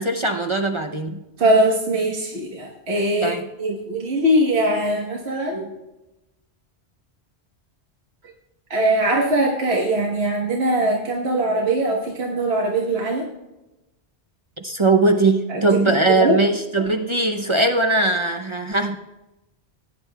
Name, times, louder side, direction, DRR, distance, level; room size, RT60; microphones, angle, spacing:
voice 1, 0.0-1.2 3.2-3.4 14.6-19.0, right 2 dB, 35° right, 4 dB, 0.6 m, -20 dB
voice 2, 1.4-5.7 8.7-13.3 15.5-15.7 16.1-16.4, right 1 dB, 70° right, -1 dB, 1.5 m, -21 dB
17.0 x 10.0 x 2.3 m, 0.98 s
omnidirectional pair, 1.1 m